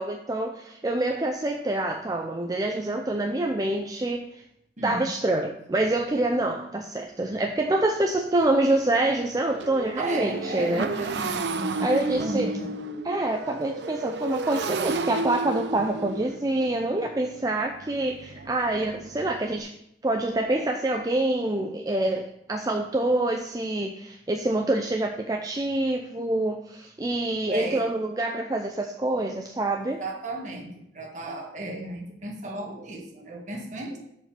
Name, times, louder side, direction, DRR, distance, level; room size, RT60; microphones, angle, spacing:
voice 1, 0.0-4.4 4.8-10.9 11.8-12.5 13.0-19.7 20.0-30.0, right 2 dB, 20° right, 3 dB, 0.5 m, -26 dB
voice 2, 4.8-5.1 10.0-12.7 27.5-27.9 30.0-34.0, right 1 dB, 45° right, 0 dB, 1.7 m, -34 dB
Motorcycle, 7.0-7.1 7.6-7.7 8.0-19.6, right 3 dB, 75° right, 0.6 m, -33 dB
7.0 x 5.2 x 6.6 m, 0.77 s
head